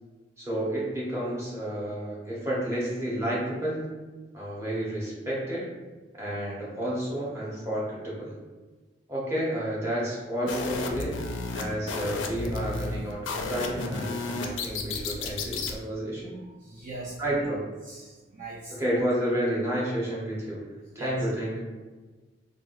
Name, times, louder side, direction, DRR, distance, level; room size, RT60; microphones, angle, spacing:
voice 1, 0.4-3.9 4.3-5.7 6.2-8.3 9.1-11.2 11.5-16.3 17.2-17.6 18.7-20.6 20.9-21.6, right 1 dB, 15° right, -6 dB, 0.9 m, -30 dB
sound 1, 10.5-15.8, left 3 dB, 80° left, 0.4 m, -33 dB
voice 2, 16.6-17.4 17.9-18.8 20.9-21.2, right 2 dB, 45° right, -5 dB, 0.5 m, -39 dB
3.4 x 2.3 x 2.6 m, 1.3 s
head